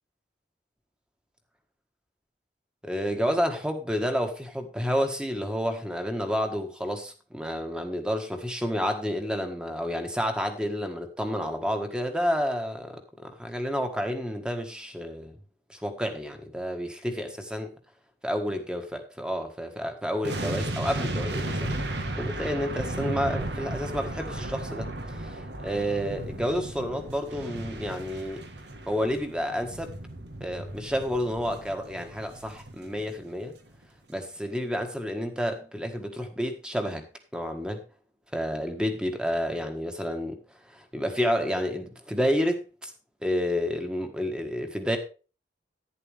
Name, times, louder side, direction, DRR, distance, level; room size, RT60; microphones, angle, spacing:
voice 1, 2.8-15.3 15.7-17.7 18.2-21.8 22.2-28.4 28.9-29.9 30.4-33.5 34.1-37.0 37.3-37.8 38.3-40.4 40.7-42.9 43.2-45.0, equal, 5° right, 6 dB, 1.5 m, -30 dB
sound 1, 20.2-33.4 33.7-33.8, right 1 dB, 70° right, 1.6 m, -35 dB
11.0 x 10.5 x 3.4 m, 0.34 s
head